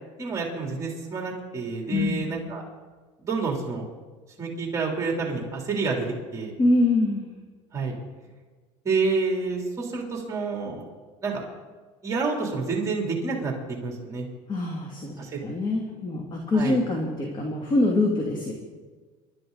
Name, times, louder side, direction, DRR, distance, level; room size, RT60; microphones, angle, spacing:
voice 1, 0.2-2.6 3.2-3.8 4.4-6.1 6.3-6.5 7.7-7.9 8.8-10.9 11.2-11.4 12.0-13.5 13.8-14.3 15.2-15.4 16.5-16.8, right 4 dB, 25° right, 0 dB, 3.3 m, -28 dB
voice 2, 1.9-2.2 6.6-7.3 14.5-18.5, left 2 dB, 30° left, 0 dB, 2.4 m, -24 dB
25.5 x 12.5 x 4.0 m, 1.4 s
cardioid pair, 135°, 14 cm